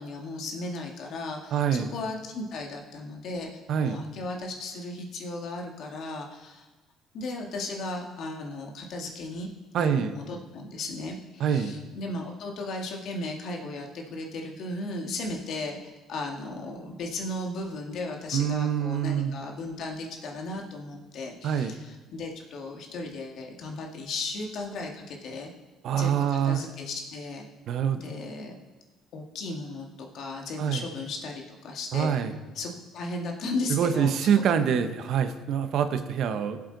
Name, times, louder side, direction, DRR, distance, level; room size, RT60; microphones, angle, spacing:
voice 1, 0.0-3.5 3.8-6.7 7.1-9.5 9.8-15.8 16.1-25.5 25.9-27.5 27.9-28.5 29.1-32.2 32.6-34.1, left 2 dB, 60° left, 1 dB, 1.9 m, -36 dB
voice 2, 1.5-1.9 3.7-4.0 9.7-10.2 11.4-11.8 18.3-19.3 21.4-21.8 25.8-26.6 27.7-28.0 30.6-30.8 31.9-32.4 33.7-36.6, right 8 dB, 60° right, 9 dB, 0.9 m, -25 dB
16.5 x 7.5 x 4.0 m, 1.2 s
cardioid pair, 100°, 0 cm